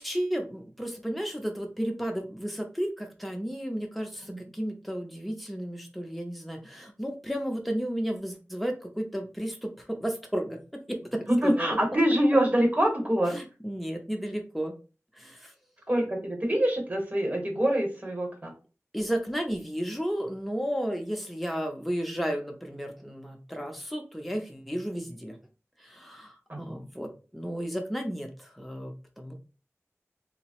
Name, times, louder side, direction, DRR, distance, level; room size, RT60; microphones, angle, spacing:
voice 1, 0.0-11.8 13.3-14.8 15.1-15.5 18.9-25.4 25.8-29.3, equal, ahead, 2 dB, 0.6 m, -33 dB
voice 2, 11.3-13.4 15.9-18.5 26.5-26.8, right 1 dB, 30° right, 2 dB, 1.1 m, -25 dB
2.8 x 2.0 x 2.9 m, 0.34 s
wide cardioid pair, 55°, 5 cm